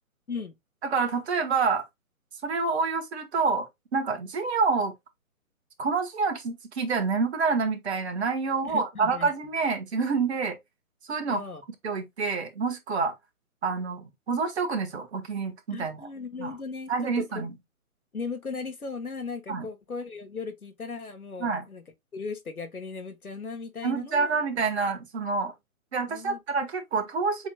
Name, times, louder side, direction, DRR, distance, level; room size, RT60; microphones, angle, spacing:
voice 1, 0.8-1.8 2.4-3.7 3.9-4.9 5.8-10.6 11.1-11.4 11.8-13.1 13.6-16.0 16.4-16.5 16.9-17.5 19.5-19.7 21.4-21.6 23.8-25.5 25.9-27.5, right 4 dB, 50° right, 1.5 m, -27 dB
voice 2, 8.6-9.3 11.3-11.6 15.7-17.4 18.1-21.8 22.1-24.3 26.1-26.4, left 4 dB, 85° left, 1.7 m, -37 dB
7.1 x 3.2 x 2.3 m
figure-of-eight pair, 140°, 43 cm